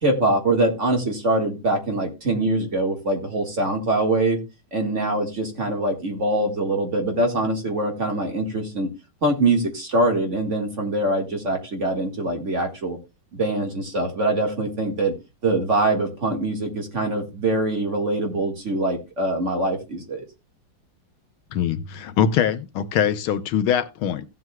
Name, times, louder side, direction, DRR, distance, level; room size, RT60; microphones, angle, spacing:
voice 1, 0.0-4.4 4.7-8.9 9.2-13.0 13.3-15.1 15.4-20.3, right 2 dB, 35° right, 1.9 m, -23 dB
voice 2, 21.5-24.2, left 9 dB, 75° left, 1.6 m, -23 dB
17.0 x 7.7 x 2.3 m
omnidirectional pair, 2.4 m